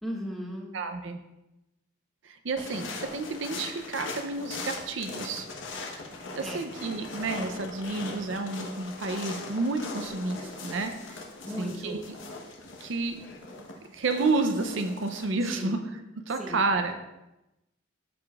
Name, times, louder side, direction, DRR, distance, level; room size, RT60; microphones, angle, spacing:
voice 1, 0.0-0.7 6.4-6.6 11.5-12.0 15.5-15.8 16.4-16.6, equal, ahead, -1 dB, 1.0 m, -36 dB
voice 2, 0.7-1.2 2.2-5.5 6.4-12.1 12.8-13.2 13.9-16.9, right 3 dB, 65° right, 6 dB, 0.5 m, -30 dB
sound 1, 2.6-15.2, left 3 dB, 70° left, 1.0 m, -40 dB
12.0 x 5.0 x 2.4 m, 0.95 s
head